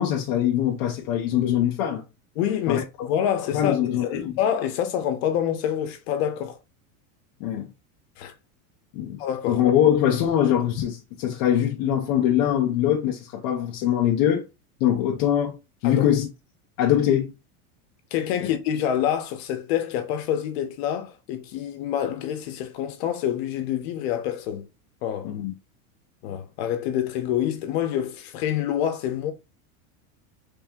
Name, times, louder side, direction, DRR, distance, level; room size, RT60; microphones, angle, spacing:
voice 1, 0.0-2.0 2.7-3.1 3.5-4.4 7.4-7.7 8.9-14.4 14.8-15.6 15.8-16.3 16.8-17.3 18.4-18.5 25.2-25.5, left 10 dB, 25° left, 0.4 m, -23 dB
voice 2, 2.4-6.6 8.2-8.3 9.2-9.6 15.8-16.1 18.1-24.7 25.0-25.3 26.2-29.3, left 10 dB, 45° left, 0.8 m, -27 dB
3.4 x 2.7 x 3.4 m
supercardioid pair, 165°, 42 cm